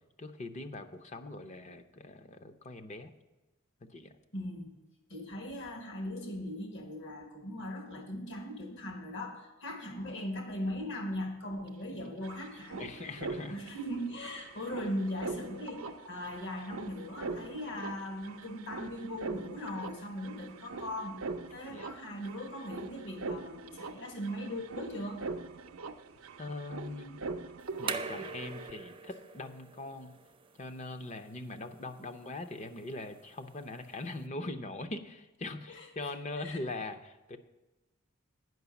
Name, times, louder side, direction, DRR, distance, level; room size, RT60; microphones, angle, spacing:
voice 1, 0.2-3.1 3.8-4.1 12.8-13.6 21.7-21.9 26.4-27.2 27.8-30.1 30.6-37.4, left 2 dB, 35° left, 9 dB, 0.6 m, -41 dB
voice 2, 4.3-4.7 5.1-12.9 13.5-21.2 21.5-25.3 35.7-35.9 36.4-36.6, left 1 dB, 60° left, 3 dB, 1.4 m, -39 dB
CR - Darkflow, 11.7-11.8 11.9-28.7, right 3 dB, 80° right, 0.6 m, -43 dB
sound 1, 27.6-34.3, right 5 dB, 25° right, 0.6 m, -44 dB
9.4 x 5.7 x 7.0 m, 1.1 s
head